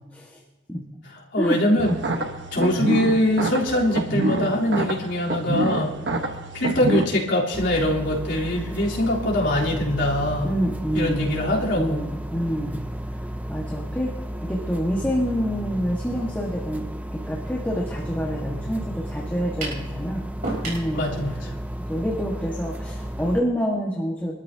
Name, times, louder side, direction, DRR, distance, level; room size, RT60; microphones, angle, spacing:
voice 1, 1.3-2.0 2.5-5.9 6.5-10.5 10.9-12.0 20.9-21.5, left 1 dB, 75° left, -5 dB, 3.6 m, -23 dB
sound 1, 1.8-7.0, right 1 dB, 65° right, 1.2 m, -27 dB
voice 2, 2.5-3.0 10.4-11.3 11.7-13.2 13.5-20.3 20.6-21.1 21.9-24.3, equal, 10° left, -4 dB, 1.5 m, -27 dB
sound 2, 7.5-23.4, right 1 dB, 5° right, 0.4 m, -33 dB
sound 3, 19.6-19.9 20.4-20.9, right 2 dB, 45° right, 5.2 m, -30 dB
24.0 x 13.0 x 2.8 m, 1.2 s
head